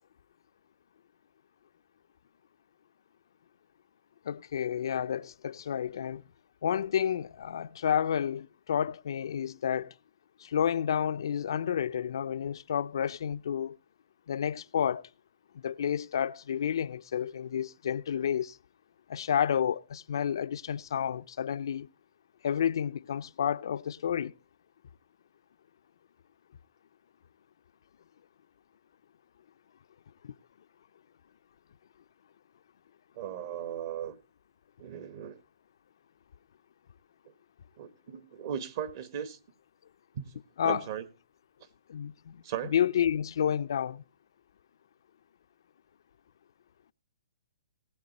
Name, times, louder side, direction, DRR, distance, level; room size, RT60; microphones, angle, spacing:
voice 1, 4.2-6.2 6.6-9.9 10.4-13.8 14.3-15.1 15.6-18.6 19.1-21.9 22.4-24.3 30.2-30.3 40.6-40.8 41.9-42.4 42.7-44.0, left 8 dB, 65° left, 0.5 m, -30 dB
voice 2, 33.1-34.2 34.8-35.4 37.3-37.4 37.8-39.4 40.1-40.3 40.6-41.1 42.4-42.7, right 9 dB, 45° right, 1.4 m, -37 dB
19.5 x 7.4 x 4.1 m
hypercardioid pair, 155°, 2 cm